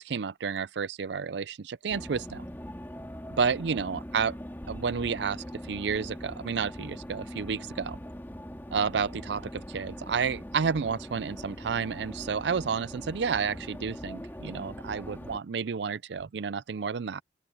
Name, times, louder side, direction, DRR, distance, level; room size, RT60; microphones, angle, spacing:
voice 1, 0.0-2.4 3.3-4.3 4.7-8.0 8.7-17.2, right 6 dB, 65° right, 0.4 m, -31 dB
sound 1, 1.9-15.4, equal, 10° left, 2.1 m, -42 dB
open air
head